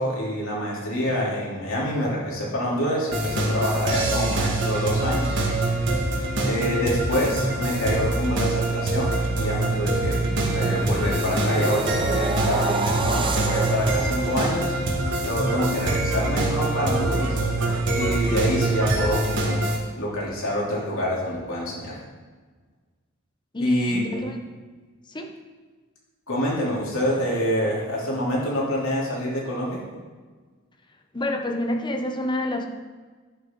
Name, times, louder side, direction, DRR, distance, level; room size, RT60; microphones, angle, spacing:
voice 1, 0.0-5.3 6.4-10.2 10.5-14.7 15.2-17.4 17.9-19.6 20.0-22.0 23.6-24.2 26.3-29.8, equal, 70° left, -4 dB, 3.1 m, -26 dB
sound 1, 3.1-19.8, right 2 dB, 60° right, 1.9 m, -25 dB
sound 2, 9.8-15.6 16.0-16.3, right 3 dB, 25° right, 0.6 m, -31 dB
sound 3, 15.0-16.5 16.9-19.1, right 3 dB, 85° right, 0.8 m, -36 dB
voice 2, 23.5-24.4 25.1-25.3 31.1-32.7, left 1 dB, 20° left, 4 dB, 0.8 m, -28 dB
11.5 x 8.9 x 3.8 m, 1.4 s
head